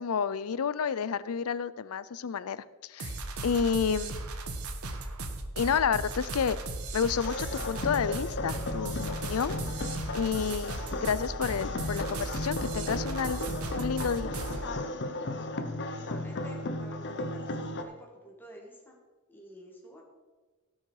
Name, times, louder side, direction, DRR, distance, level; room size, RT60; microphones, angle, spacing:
voice 1, 0.0-2.6 2.9-3.2 3.4-4.2 5.6-6.6 6.9-9.5 10.1-10.7 11.0-13.4 13.7-14.3, left 6 dB, 75° left, 17 dB, 0.5 m, -30 dB
sound 1, 3.0-14.7, right 2 dB, 80° right, 1.2 m, -37 dB
sound 2, 7.2-17.8, left 2 dB, 55° left, 0.9 m, -35 dB
voice 2, 15.9-19.0 19.3-20.0, equal, 10° left, -2 dB, 2.1 m, -50 dB
17.0 x 6.5 x 4.8 m, 1.3 s
head